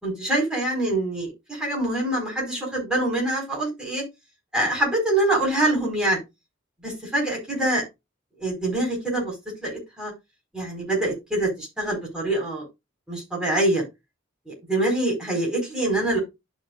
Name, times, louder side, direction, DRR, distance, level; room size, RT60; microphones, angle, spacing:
voice 1, 0.0-4.0 4.5-6.2 6.8-7.8 8.4-9.3 9.6-10.1 10.5-12.6 13.1-13.8 14.5-16.2, right 1 dB, 5° right, -3 dB, 4.6 m, -25 dB
11.5 x 6.2 x 2.4 m, 0.22 s
head